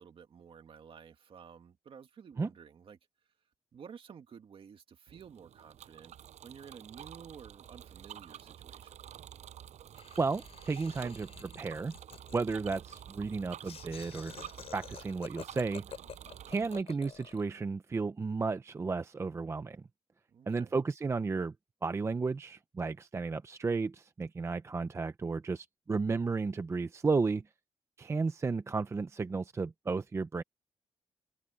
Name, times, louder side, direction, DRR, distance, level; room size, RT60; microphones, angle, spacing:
voice 1, 0.0-3.0 3.7-6.1 6.4-9.0 20.3-20.7, right 7 dB, 50° right, 2.2 m, -52 dB
Bicycle, 5.1-16.8, right 10 dB, 80° right, 6.9 m, -49 dB
Laughter, 9.9-17.5, left 8 dB, 60° left, 5.0 m, -50 dB
voice 2, 10.2-12.0 12.3-14.4 14.7-15.9 16.5-19.8 20.5-21.5 21.8-27.4 28.0-30.4, right 4 dB, 25° right, 0.5 m, -33 dB
wide cardioid pair, 150°, 12 cm